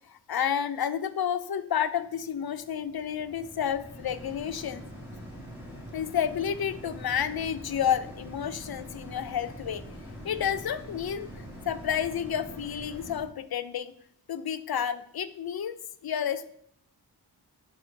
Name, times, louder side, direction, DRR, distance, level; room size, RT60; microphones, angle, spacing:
voice 1, 0.1-4.8 5.9-9.9 10.2-14.0 14.3-16.5, left 8 dB, 65° left, 11 dB, 0.5 m, -30 dB
sound 1, 2.0-13.2, equal, 5° right, 2.8 m, -44 dB
5.5 x 5.1 x 4.5 m, 0.67 s
wide cardioid pair, 110°, 41 cm